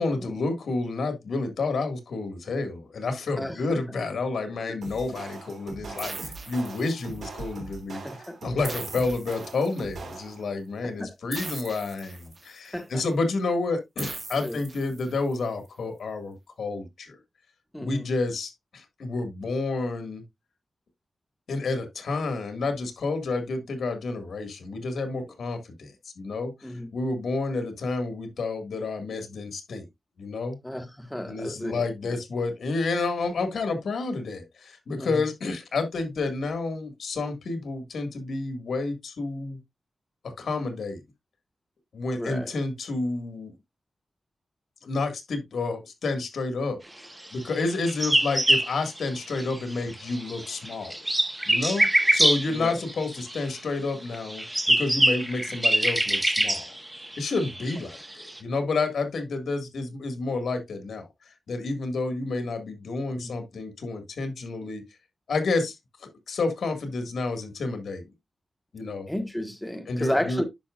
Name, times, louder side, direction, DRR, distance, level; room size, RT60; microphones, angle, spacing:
voice 1, 0.0-8.0 8.4-17.2 17.8-20.2 21.5-29.9 30.2-30.6 31.3-39.6 40.4-41.0 41.9-43.5 44.8-46.8 47.3-51.0 51.5-56.7 57.2-61.1 61.5-64.8 65.3-68.0 68.7-69.1 69.9-70.4, left 3 dB, 85° left, 1.9 m, -30 dB
sound 1, 4.8-10.5, right 4 dB, 80° right, 2.7 m, -41 dB
sound 2, 6.0-7.3 8.6-10.0 11.3-12.7 14.0-15.3, right 3 dB, 35° right, 1.9 m, -40 dB
voice 2, 8.0-8.4 11.0-11.1 12.7-13.0 14.4-14.6 17.7-18.1 26.6-26.9 30.6-32.2 35.0-35.3 42.1-42.5 52.5-52.8 63.1-63.4 69.1-70.4, left 1 dB, 5° left, 1.4 m, -32 dB
sound 3, 47.5-49.7 50.0-53.6 54.1-58.4, right 1 dB, 10° right, 1.1 m, -24 dB
10.0 x 6.0 x 2.5 m
wide cardioid pair, 115°, 0 cm